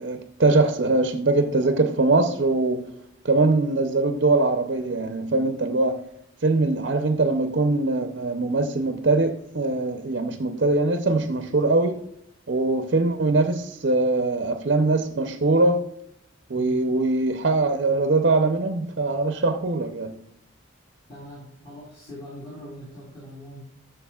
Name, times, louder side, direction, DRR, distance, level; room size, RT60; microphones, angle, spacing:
voice 1, 0.0-2.9 3.2-6.0 6.4-12.0 12.5-15.9 16.5-20.2, right 2 dB, 55° right, 0.6 m, -22 dB
voice 2, 21.1-23.6, equal, 25° left, 3.1 m, -42 dB
11.5 x 6.9 x 2.3 m
head